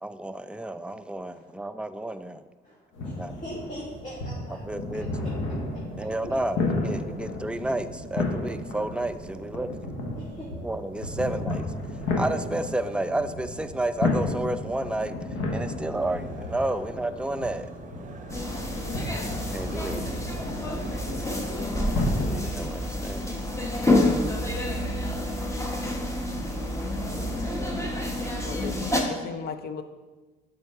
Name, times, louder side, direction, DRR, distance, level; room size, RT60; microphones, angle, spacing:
voice 1, 0.0-2.4 3.2-3.3 4.7-5.1 6.0-9.7 10.6-11.7 12.2-15.1 15.5-17.7 19.5-20.0 22.3-23.4, right 1 dB, 5° right, 10 dB, 0.4 m, -31 dB
voice 2, 2.6-5.3 10.2-10.6 16.7-16.8 20.7-21.1 23.7-23.8 24.7-24.8 26.9-27.9, equal, 40° left, -6 dB, 1.9 m, -44 dB
sound 1, 2.9-22.5, left 2 dB, 80° left, 1.2 m, -33 dB
sound 2, 3.1-22.1, right 4 dB, 40° right, 0.7 m, -44 dB
sound 3, 18.3-29.0, left 1 dB, 15° left, 1.2 m, -28 dB
voice 3, 28.4-29.8, left 6 dB, 55° left, 9 dB, 0.7 m, -36 dB
6.9 x 3.9 x 4.8 m, 1.2 s
supercardioid pair, 70°, 20 cm